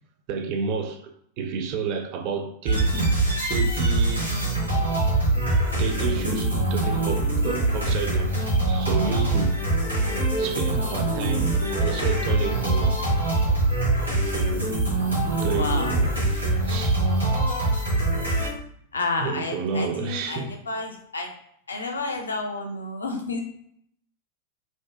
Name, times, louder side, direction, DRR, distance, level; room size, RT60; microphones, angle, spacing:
voice 1, 0.3-3.2 3.5-4.3 5.4-8.4 8.7-9.6 10.4-13.1 15.4-17.1 19.2-20.6, right 5 dB, 45° right, 0.3 m, -31 dB
sound 1, 2.7-18.5, right 2 dB, 85° right, 1.0 m, -23 dB
voice 2, 15.4-16.0 18.9-21.3 21.7-23.4, left 3 dB, 75° left, 0.4 m, -30 dB
2.5 x 2.1 x 2.3 m
figure-of-eight pair, 90°, 0 cm